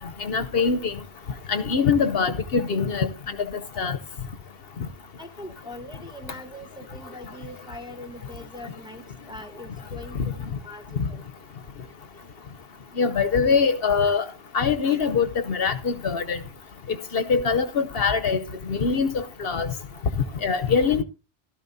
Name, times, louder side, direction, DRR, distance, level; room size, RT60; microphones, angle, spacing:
voice 1, 0.2-0.9 1.5-3.1 3.8-4.0 13.0-14.2 14.5-16.4 17.1-18.4 18.7-19.7 20.4-21.0, left 5 dB, 65° left, 1.0 m, -23 dB
voice 2, 5.2-10.8 11.1-11.2, left 1 dB, 5° right, 1.1 m, -41 dB
16.0 x 13.0 x 2.7 m
omnidirectional pair, 1.1 m